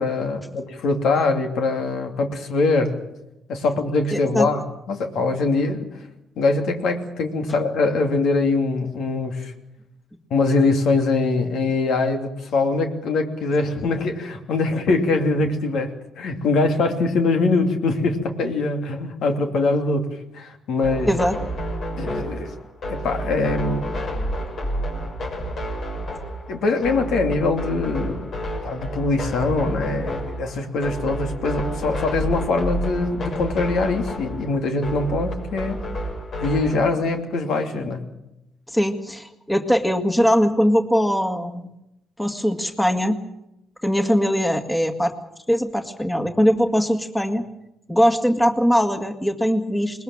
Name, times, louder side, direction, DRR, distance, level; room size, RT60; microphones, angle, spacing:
voice 1, 0.0-3.0 3.5-6.0 6.4-9.5 10.3-20.1 20.3-21.1 22.0-22.5 22.9-23.8 26.5-28.3 28.6-35.8 36.4-38.0, left 3 dB, 75° left, 4 dB, 2.8 m, -23 dB
voice 2, 4.1-4.5 21.1-21.4 38.7-41.7 42.2-43.2 43.8-45.1 45.5-47.4 47.9-50.0, equal, 5° left, 7 dB, 1.9 m, -21 dB
sound 1, 20.8-36.8, right 1 dB, 60° left, 6.5 m, -30 dB
21.0 x 21.0 x 7.4 m, 0.86 s
cardioid pair, 90°, 0 cm